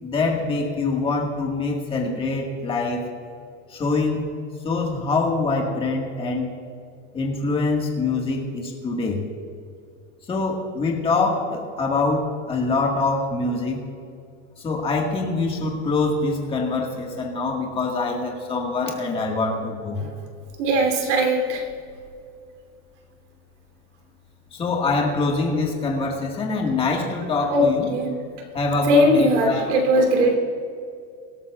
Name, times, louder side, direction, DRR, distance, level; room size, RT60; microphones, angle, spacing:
voice 1, 0.0-3.0 3.7-4.3 4.6-6.5 7.1-9.2 10.3-13.8 14.6-20.0 24.5-27.9 28.5-29.6, left 3 dB, 15° left, 0 dB, 1.6 m, -24 dB
voice 2, 20.6-21.6 27.5-28.1 28.9-30.4, equal, 85° right, 2 dB, 3.1 m, -19 dB
24.5 x 12.5 x 2.4 m, 2.4 s
supercardioid pair, 170°, 35 cm